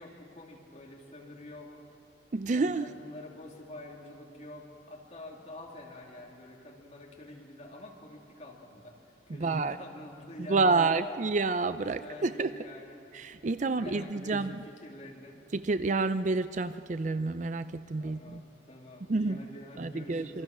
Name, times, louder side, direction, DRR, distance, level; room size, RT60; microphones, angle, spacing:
voice 1, 0.0-1.8 2.5-11.1 12.0-13.0 13.6-15.4 18.0-20.4, left 1 dB, 35° left, -2 dB, 3.1 m, -47 dB
voice 2, 2.3-2.9 9.4-9.8 10.4-12.5 13.1-14.6 15.5-18.4 19.1-19.4 19.8-20.4, right 3 dB, 40° right, 12 dB, 0.5 m, -29 dB
27.0 x 23.5 x 6.2 m, 2.7 s
head